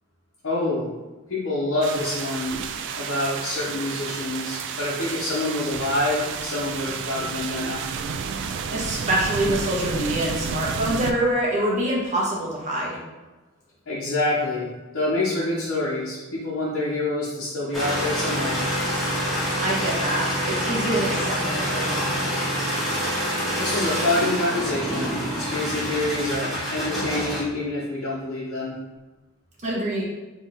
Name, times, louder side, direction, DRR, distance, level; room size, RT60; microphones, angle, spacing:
voice 1, 0.4-0.9 1.3-2.6 2.9-7.8 13.9-14.7 14.9-18.6 23.6-28.8, left 2 dB, 60° left, -8 dB, 1.0 m, -26 dB
sound 1, 1.8-11.1, right 6 dB, 55° right, 0.3 m, -31 dB
voice 2, 8.7-13.0 19.6-22.2 29.6-30.0, right 1 dB, 35° right, -4 dB, 1.2 m, -25 dB
sound 2, 17.7-27.4, equal, ahead, 1.1 m, -26 dB
4.2 x 3.1 x 3.6 m, 1.2 s
head